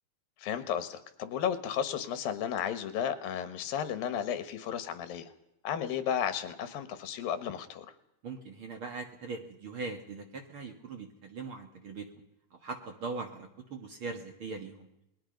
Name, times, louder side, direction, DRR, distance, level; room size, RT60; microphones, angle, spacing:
voice 1, 0.4-5.3 5.6-7.9, left 8 dB, 85° left, 10 dB, 3.2 m, -33 dB
voice 2, 8.2-12.1 12.5-14.9, right 4 dB, 45° right, 4 dB, 1.9 m, -40 dB
27.5 x 21.0 x 5.3 m, 0.82 s
omnidirectional pair, 4.0 m